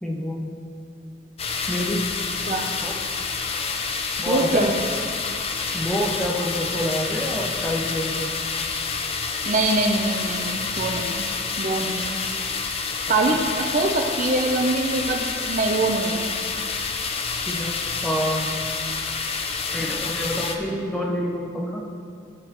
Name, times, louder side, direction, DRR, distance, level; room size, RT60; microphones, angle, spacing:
voice 1, 0.0-0.6 1.7-2.0 2.8-3.0 4.2-4.7 5.7-8.3 13.3-13.4 17.5-17.7 18.0-18.5 19.7-21.9, equal, 5° left, -3 dB, 1.3 m, -27 dB
sound 1, 1.4-20.6, left 5 dB, 35° left, 0.7 m, -28 dB
voice 2, 4.3-4.8 9.5-11.2 11.6-12.2 13.1-16.2, right 2 dB, 45° right, 3 dB, 0.7 m, -23 dB
17.5 x 8.6 x 3.1 m, 2.3 s
head